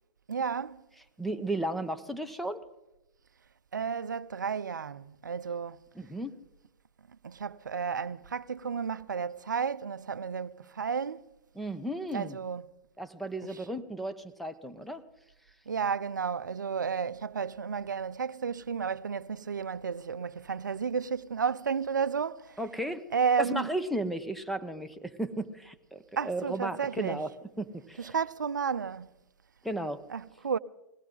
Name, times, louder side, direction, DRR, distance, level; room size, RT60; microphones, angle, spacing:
voice 1, 0.3-0.8 3.7-5.8 7.2-11.2 12.1-12.6 13.4-13.6 15.7-22.6 23.1-23.7 26.2-27.2 28.0-29.1 30.1-30.6, right 6 dB, 85° right, 0.5 m, -32 dB
voice 2, 1.2-2.6 6.0-6.3 11.5-12.4 13.0-15.0 22.6-23.1 23.4-27.3 27.6-28.1 29.6-30.0, right 1 dB, ahead, 0.9 m, -34 dB
20.5 x 16.5 x 3.9 m
hypercardioid pair, 110°, 10 cm